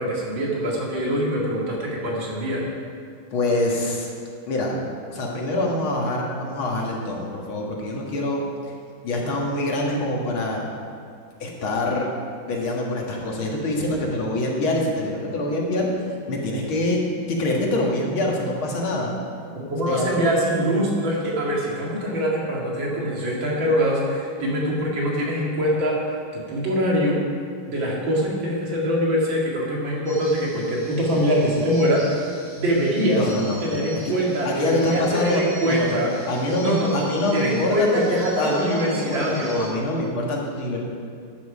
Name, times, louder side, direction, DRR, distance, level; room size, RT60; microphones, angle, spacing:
voice 1, 0.0-2.6 19.6-27.2 27.7-32.2 32.6-33.3 33.6-36.1 36.6-39.8, equal, 65° right, -3 dB, 3.0 m, -23 dB
voice 2, 3.3-4.1 4.5-4.7 5.1-8.5 9.0-10.6 11.4-12.1 12.5-15.9 16.3-17.0 17.3-19.1 19.8-20.4 33.1-34.1 34.4-36.0 36.3-40.8, left 1 dB, 85° left, -1 dB, 2.6 m, -25 dB
sound 1, 30.1-39.7, equal, 15° right, 2.4 m, -42 dB
12.0 x 9.7 x 5.2 m, 2.2 s
omnidirectional pair, 2.2 m